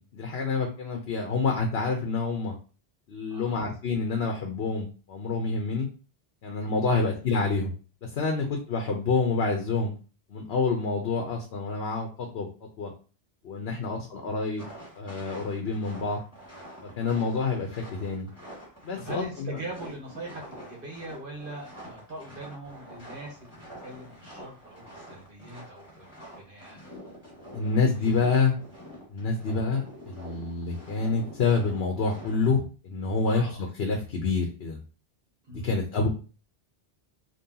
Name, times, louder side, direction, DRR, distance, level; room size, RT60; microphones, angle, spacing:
voice 1, 0.0-2.5 3.1-5.9 6.4-7.7 8.0-9.9 10.3-12.5 12.8-12.9 13.4-14.7 14.9-16.2 16.8-18.3 18.8-19.6 27.5-28.6 29.1-34.8 35.5-36.1, left 4 dB, 80° left, 2 dB, 1.1 m, -27 dB
voice 2, 3.3-3.7 6.9-7.1 13.7-14.1 18.9-26.1 26.3-26.8 27.7-28.1 33.2-33.6 35.5-35.9, right 1 dB, 60° right, -1 dB, 1.6 m, -42 dB
sound 1, 14.6-32.5, equal, 15° left, 2.0 m, -46 dB
5.4 x 2.9 x 2.8 m, 0.35 s
omnidirectional pair, 1.0 m